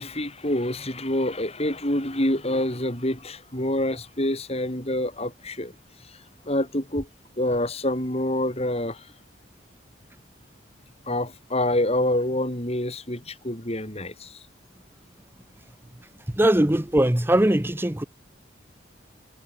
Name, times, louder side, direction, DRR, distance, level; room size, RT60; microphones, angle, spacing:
voice 1, 0.0-5.7 6.1-6.2 6.5-7.1 7.4-9.1 11.1-14.4, left 1 dB, 30° left, 6.5 m, -26 dB
voice 2, 16.3-18.0, right 1 dB, 10° right, 0.9 m, -20 dB
head